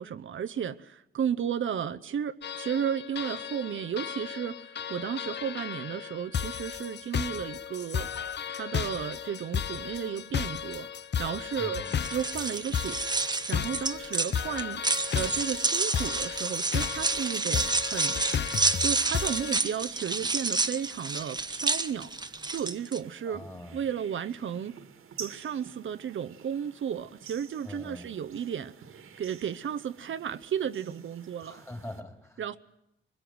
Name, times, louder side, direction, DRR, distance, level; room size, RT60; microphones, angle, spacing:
voice 1, 0.0-8.1 8.5-11.8 12.1-14.8 15.1-18.2 18.8-22.1 22.4-23.4 23.7-24.7 25.2-28.7 29.2-31.6 32.4-32.6, right 8 dB, 70° right, 0.9 m, -33 dB
sound 1, 2.4-19.6, left 8 dB, 55° left, 0.8 m, -34 dB
voice 2, 11.6-12.0 23.3-23.8 27.6-28.1 31.4-32.4, left 1 dB, 15° left, 3.4 m, -43 dB
sound 2, 11.8-23.0, right 3 dB, 20° right, 1.1 m, -29 dB
sound 3, 12.3-32.0, right 7 dB, 85° right, 2.2 m, -52 dB
23.0 x 21.5 x 7.9 m
wide cardioid pair, 120°, 21 cm